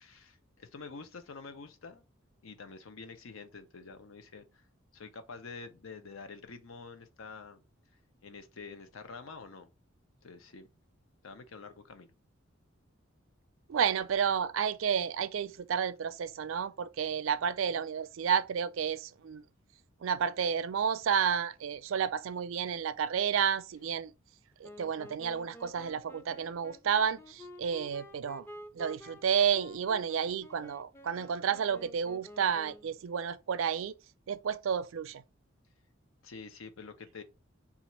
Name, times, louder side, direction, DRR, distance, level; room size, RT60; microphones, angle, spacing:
voice 1, 0.0-2.1 2.4-4.7 4.9-7.6 8.2-9.7 10.2-10.7 11.2-12.1 36.2-37.2, left 4 dB, 80° left, 0.7 m, -47 dB
voice 2, 13.7-19.4 20.0-24.1 24.6-28.5 28.7-33.9 34.3-35.2, right 7 dB, 70° right, 0.4 m, -31 dB
Wind instrument woodwind instrument, 24.6-33.0, left 1 dB, 10° left, 0.4 m, -50 dB
4.1 x 2.4 x 4.2 m
head